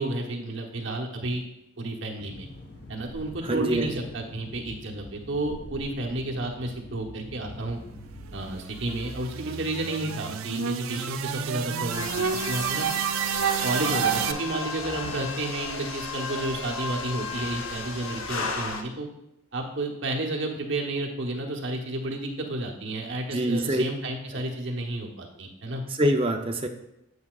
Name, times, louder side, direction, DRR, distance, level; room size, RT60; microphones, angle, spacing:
voice 1, 0.0-1.4 1.8-2.5 2.9-7.8 8.3-12.9 13.6-19.1 19.5-25.8, right 2 dB, 65° right, 1 dB, 1.0 m, -31 dB
sound 1, 2.2-8.6, left 1 dB, 50° left, 1.2 m, -44 dB
voice 2, 3.4-4.0 23.3-23.8 24.3-24.4 26.0-26.7, right 1 dB, 25° right, 4 dB, 0.6 m, -25 dB
sound 2, 7.9-14.3, right 8 dB, 85° right, 0.4 m, -30 dB
sound 3, 11.9-18.8, left 3 dB, 80° left, 0.8 m, -34 dB
8.3 x 8.1 x 2.4 m, 0.86 s
head